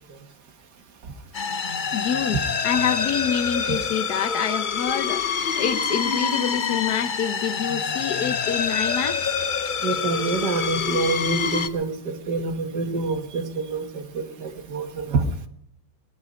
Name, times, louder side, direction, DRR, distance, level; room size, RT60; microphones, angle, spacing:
sound 1, 1.3-11.7, left 6 dB, 90° left, 0.4 m, -26 dB
voice 1, 1.9-9.3, left 8 dB, 60° left, 1.5 m, -27 dB
voice 2, 9.8-15.5, right 3 dB, 60° right, 2.1 m, -27 dB
20.0 x 12.0 x 5.2 m
omnidirectional pair, 2.0 m